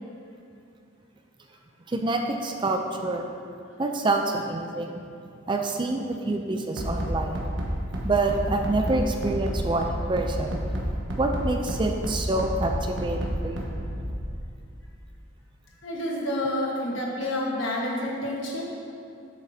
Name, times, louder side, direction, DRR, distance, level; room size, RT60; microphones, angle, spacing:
voice 1, 1.9-3.3 3.8-4.9 5.5-7.4 8.0-10.6 11.2-13.7, right 2 dB, 25° right, 4 dB, 0.4 m, -27 dB
Bass drum, 6.8-14.1, equal, 65° right, 1.1 m, -30 dB
voice 2, 15.8-18.7, left 1 dB, 70° left, -3 dB, 1.4 m, -29 dB
8.5 x 7.3 x 2.8 m, 2.5 s
head